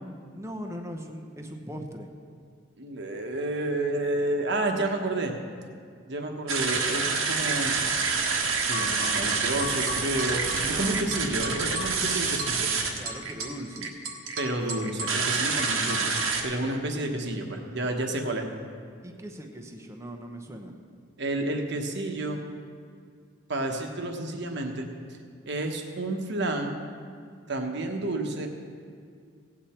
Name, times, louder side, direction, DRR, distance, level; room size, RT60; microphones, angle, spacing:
voice 1, 0.3-2.1 10.6-11.1 12.9-13.9 19.0-20.7, equal, 15° right, 3 dB, 0.8 m, -39 dB
voice 2, 2.8-5.3 6.1-7.8 8.7-12.7 14.4-18.5 21.2-22.4 23.5-24.9 25.5-26.8 27.5-28.5, right 2 dB, 55° right, 4 dB, 1.2 m, -30 dB
sound 1, 6.5-16.4, right 4 dB, 80° right, 1.4 m, -27 dB
17.0 x 8.5 x 4.4 m, 2.2 s
head